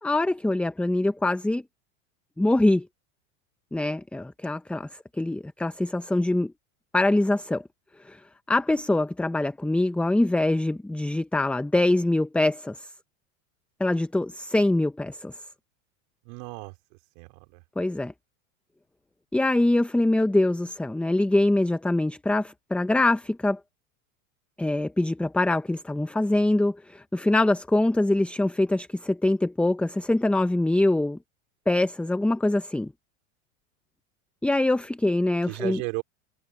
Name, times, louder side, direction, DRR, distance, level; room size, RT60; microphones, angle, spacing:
voice 1, 0.0-1.6 2.4-2.9 3.7-6.5 6.9-7.6 8.0-8.2 8.5-12.9 13.8-15.3 17.8-18.1 19.3-23.6 24.6-31.2 31.7-32.9 34.4-35.8, left 2 dB, 5° left, 0.8 m, -24 dB
voice 2, 16.2-16.7 17.1-17.6 35.4-36.0, right 33 dB, 60° right, 4.6 m, -34 dB
hypercardioid pair, 105°, 39 cm